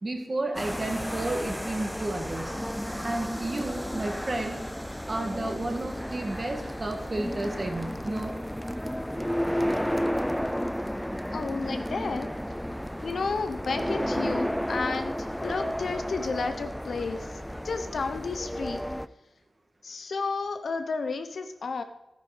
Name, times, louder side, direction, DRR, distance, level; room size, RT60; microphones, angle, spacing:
voice 1, 0.0-2.5 3.0-4.6 5.1-8.4, right 2 dB, 30° right, 3 dB, 1.9 m, -32 dB
sound 1, 0.6-19.1, equal, 5° left, 0.4 m, -32 dB
voice 2, 11.3-12.3 13.0-18.8 19.8-21.8, left 4 dB, 65° left, 8 dB, 1.0 m, -32 dB
14.0 x 9.6 x 5.1 m, 0.93 s
wide cardioid pair, 170°, 0 cm